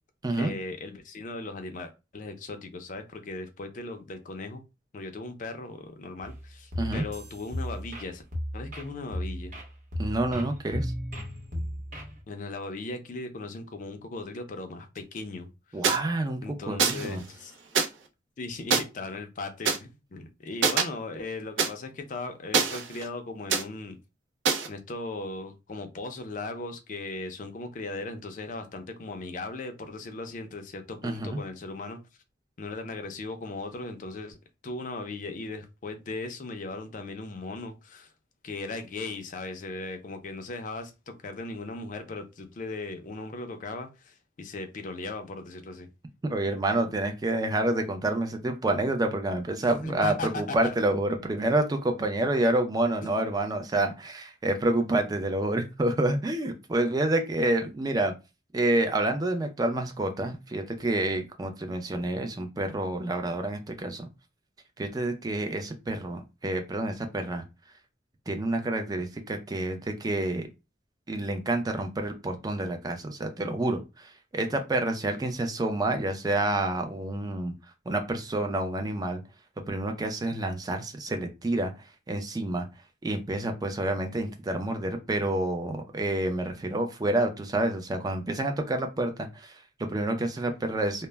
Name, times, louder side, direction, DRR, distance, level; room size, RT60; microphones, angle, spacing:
voice 1, 0.3-4.6 4.9-8.2 8.5-9.6 12.3-15.9 16.4-17.5 18.4-24.0 24.6-32.0 32.6-34.4 34.6-38.1 38.4-45.9 49.6-50.7 53.0-53.3, left 3 dB, 45° left, 0.4 m, -38 dB
sound 1, 6.2-12.2, equal, 40° right, 0.8 m, -35 dB
voice 2, 10.0-10.9 15.7-17.2 31.0-31.4 46.2-58.1 58.5-64.1 64.8-67.4 68.3-70.5 71.1-77.5 77.9-79.2 79.6-81.7 82.1-82.7 83.0-91.1, right 1 dB, 20° right, 0.4 m, -28 dB
sound 2, 15.8-16.0 16.8-17.1 17.7-17.9 18.7-18.8 19.6-19.8 20.6-20.8 21.6-21.7 22.5-23.1 23.5-23.6 24.4-24.7, right 5 dB, 80° right, 0.4 m, -24 dB
2.1 x 2.0 x 3.2 m
head